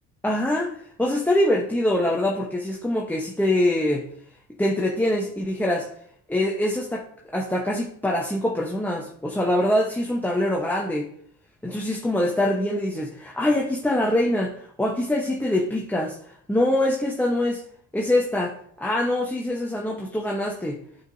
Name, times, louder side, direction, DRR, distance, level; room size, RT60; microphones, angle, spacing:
voice 1, 0.2-4.1 4.6-5.9 6.3-7.1 7.3-11.1 11.6-16.2 16.5-17.6 17.9-20.8, left 1 dB, 5° left, -1 dB, 1.0 m, -24 dB
8.6 x 4.9 x 2.7 m, 0.64 s
cardioid pair, 90°, 30 cm